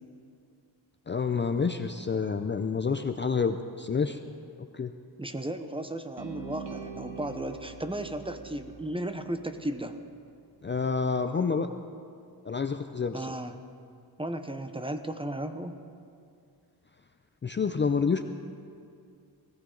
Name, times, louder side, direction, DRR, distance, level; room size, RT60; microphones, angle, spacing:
voice 1, 1.1-4.2 4.7-4.9 10.6-11.7 12.4-13.3 17.4-18.2, left 5 dB, 25° left, 8 dB, 0.5 m, -28 dB
voice 2, 5.2-10.0 13.1-13.6 14.2-15.8, right 1 dB, 15° right, 8 dB, 0.8 m, -35 dB
sound 1, 6.2-10.2, right 5 dB, 80° right, 1.6 m, -44 dB
19.5 x 15.0 x 3.9 m, 2.4 s
wide cardioid pair, 95°, 42 cm